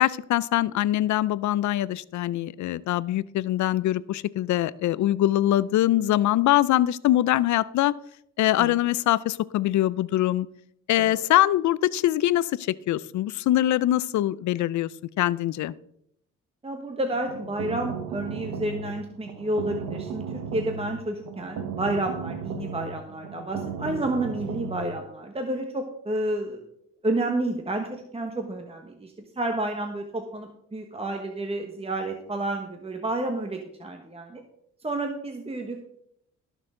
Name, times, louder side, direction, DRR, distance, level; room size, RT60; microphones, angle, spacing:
voice 1, 0.0-7.9 8.4-10.5 10.9-14.9 15.2-15.7, left 14 dB, 70° left, 19 dB, 0.5 m, -23 dB
voice 2, 16.6-26.6 27.0-34.4 34.8-35.8, right 1 dB, 20° right, 4 dB, 1.3 m, -30 dB
sound 1, 17.1-25.0, right 6 dB, 90° right, 1.1 m, -35 dB
18.5 x 6.5 x 3.8 m, 0.74 s
cardioid pair, 90°, 30 cm